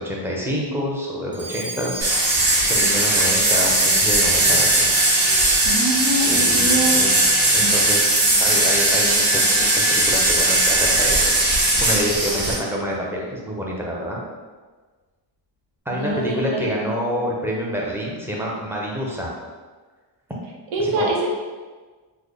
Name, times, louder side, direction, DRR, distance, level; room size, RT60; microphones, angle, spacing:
voice 1, 0.0-4.9 6.2-7.2 7.5-11.3 11.8-14.2 15.9-19.3 20.8-21.1, equal, 5° right, -4 dB, 0.4 m, -27 dB
Alarm, 1.3-6.0, right 2 dB, 40° right, 0.8 m, -31 dB
sound 1, 2.0-12.5, right 1 dB, 70° right, 1.2 m, -18 dB
voice 2, 5.6-7.0 7.6-7.7 16.0-17.0 20.7-21.4, right 1 dB, 90° right, -1 dB, 0.8 m, -24 dB
3.2 x 2.0 x 3.7 m, 1.4 s
wide cardioid pair, 145°, 45 cm